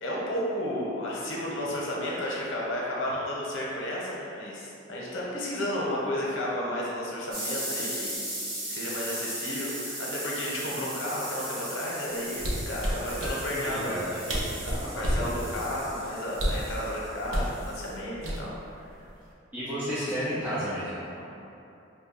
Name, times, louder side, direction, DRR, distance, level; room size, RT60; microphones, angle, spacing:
voice 1, 0.0-8.1 8.7-14.0 14.6-18.9, left 1 dB, 75° left, -5 dB, 0.7 m, -32 dB
sound 1, 7.3-17.9, right 1 dB, 50° right, 1.4 m, -38 dB
sound 2, 12.4-13.4 14.0-14.1 14.3-15.3 16.3-16.7 17.3-17.5 18.2-18.7 19.0-19.3, equal, 75° right, 0.6 m, -29 dB
voice 2, 13.2-14.2 14.7-15.4 19.5-21.2, equal, 10° right, -12 dB, 0.4 m, -33 dB
2.7 x 2.2 x 4.1 m, 2.7 s
head